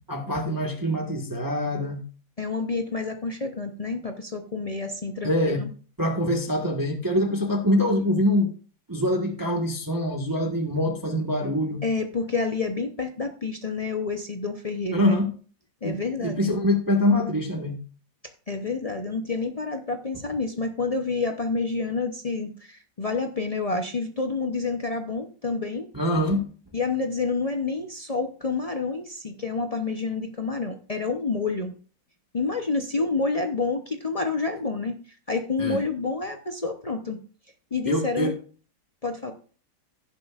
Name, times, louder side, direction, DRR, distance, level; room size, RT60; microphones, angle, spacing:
voice 1, 0.1-2.0 5.2-5.6 6.0-8.5 8.9-11.8 14.9-15.3 15.8-17.8 25.9-26.4 35.6-35.8 37.9-38.3, left 1 dB, 10° right, 2 dB, 1.3 m, -24 dB
voice 2, 2.4-5.7 11.8-15.1 15.8-16.5 18.5-25.9 26.7-31.7 32.3-35.0 35.3-37.2 37.7-38.3 39.0-39.3, left 4 dB, 65° left, 5 dB, 0.3 m, -28 dB
16.5 x 6.8 x 2.4 m, 0.40 s
omnidirectional pair, 2.0 m